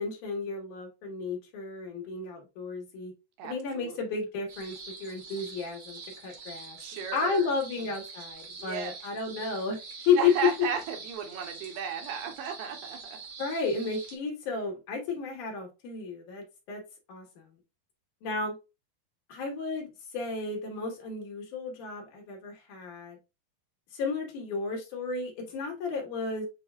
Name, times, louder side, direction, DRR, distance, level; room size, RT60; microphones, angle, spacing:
voice 1, 0.0-3.1 3.4-6.8 7.1-9.8 10.1-10.3 13.4-16.8 17.1-17.5 18.2-18.6 19.3-19.9 20.1-23.2 23.9-26.4, left 5 dB, 65° left, 2.3 m, -32 dB
sound 1, 4.5-14.2, right 4 dB, 60° right, 1.7 m, -45 dB
voice 2, 6.8-7.5 8.6-8.9 10.2-13.2, right 7 dB, 80° right, 2.9 m, -34 dB
8.0 x 2.7 x 2.2 m
omnidirectional pair, 4.8 m